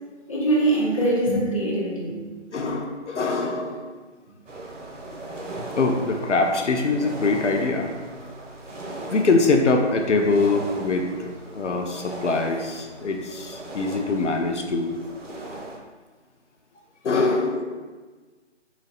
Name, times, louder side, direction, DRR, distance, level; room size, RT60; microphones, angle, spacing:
voice 1, 0.3-2.2 15.6-15.7, right 2 dB, 30° left, -6 dB, 0.6 m, -23 dB
voice 2, 2.5-3.9 5.8-7.9 9.1-15.0 17.0-17.6, left 3 dB, 75° left, 3 dB, 0.6 m, -23 dB
sound 1, 4.5-15.8, right 2 dB, 85° right, 0.9 m, -38 dB
4.0 x 2.1 x 4.0 m, 1.4 s
figure-of-eight pair, 170°, 36 cm